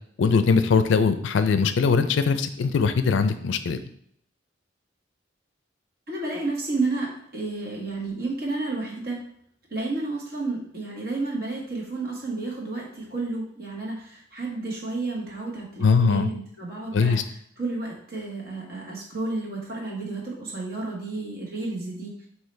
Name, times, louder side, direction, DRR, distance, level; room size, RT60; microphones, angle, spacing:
voice 1, 0.2-3.8 15.8-16.3 16.9-17.2, left 5 dB, 75° left, 10 dB, 0.4 m, -21 dB
voice 2, 6.1-9.2 9.7-17.2 17.6-22.1, right 3 dB, 50° right, -3 dB, 1.4 m, -31 dB
5.5 x 2.8 x 3.2 m, 0.68 s
head